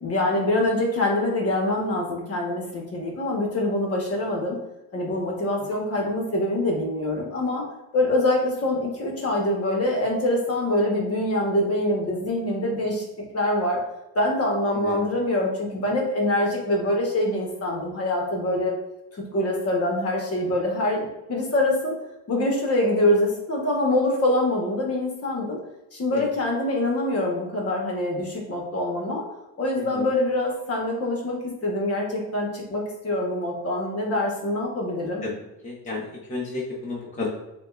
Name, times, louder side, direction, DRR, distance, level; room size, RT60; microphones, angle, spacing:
voice 1, 0.0-4.6 4.9-7.7 7.9-13.1 13.3-13.8 14.1-18.8 19.3-22.0 22.3-25.6 25.9-29.2 29.6-35.2, left 1 dB, 40° left, 0 dB, 1.2 m, -24 dB
voice 2, 35.6-37.3, left 3 dB, 20° left, -5 dB, 0.9 m, -31 dB
6.9 x 2.4 x 2.4 m, 0.92 s
cardioid pair, 105°, 37 cm